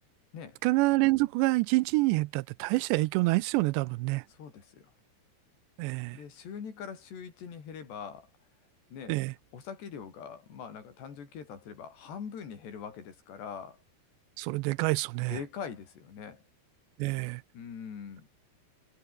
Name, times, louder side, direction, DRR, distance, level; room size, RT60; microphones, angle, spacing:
voice 1, 0.6-4.2 5.8-6.2 9.1-9.3 14.4-15.4 17.0-17.4, right 22 dB, 90° right, 2.9 m, -27 dB
voice 2, 4.3-4.9 6.1-8.3 8.9-9.2 9.5-13.8 15.3-16.4 17.5-18.3, left 7 dB, 75° left, 6.4 m, -42 dB
omnidirectional pair, 4.9 m